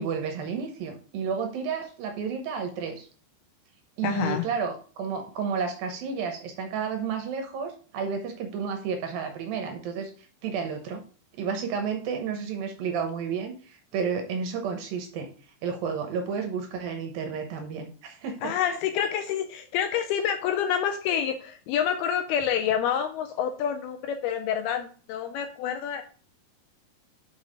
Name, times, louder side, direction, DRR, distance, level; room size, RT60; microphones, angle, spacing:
voice 1, 0.0-3.1 4.0-11.0 11.4-15.3 15.6-18.8, right 6 dB, 70° right, 5 dB, 2.4 m, -31 dB
voice 2, 4.0-4.5 18.4-26.0, left 9 dB, 80° left, 7 dB, 2.3 m, -28 dB
6.3 x 5.8 x 4.9 m, 0.41 s
omnidirectional pair, 4.9 m